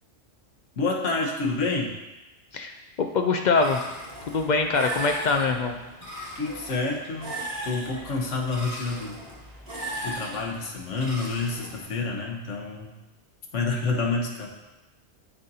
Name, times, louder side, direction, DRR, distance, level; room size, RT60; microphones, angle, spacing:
voice 1, 0.8-1.9 6.3-7.4 7.6-9.2 10.0-12.9 13.5-14.5, left 3 dB, 85° left, 0 dB, 1.4 m, -28 dB
voice 2, 3.0-3.8 4.3-5.8, left 4 dB, 60° left, 4 dB, 0.4 m, -23 dB
sound 1, 3.5-11.8, right 1 dB, 45° right, 2.5 m, -38 dB
12.0 x 4.0 x 2.7 m, 1.0 s
omnidirectional pair, 1.2 m